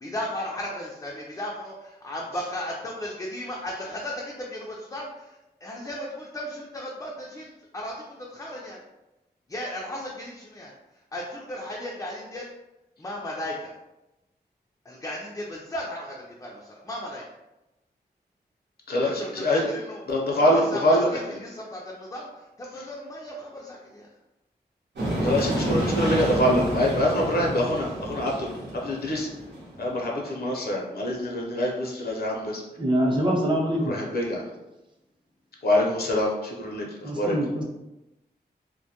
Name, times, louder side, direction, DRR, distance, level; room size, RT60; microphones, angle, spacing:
voice 1, 0.0-5.3 5.6-8.8 9.5-10.7 11.1-12.5 13.0-13.7 14.9-17.2 19.2-20.0 20.3-22.3 22.6-24.1, left 1 dB, 20° left, -3 dB, 0.4 m, -35 dB
voice 2, 18.9-19.7 20.1-21.2 25.2-28.5 28.7-29.3 29.8-32.6 33.9-34.5 35.6-37.4, left 1 dB, 65° left, -1 dB, 0.6 m, -25 dB
sound 1, 25.0-30.1, right 1 dB, 85° right, 0.8 m, -29 dB
voice 3, 32.8-33.9 37.0-37.6, equal, 30° right, -3 dB, 0.8 m, -24 dB
2.2 x 2.1 x 2.8 m, 0.97 s
cardioid pair, 50°, 18 cm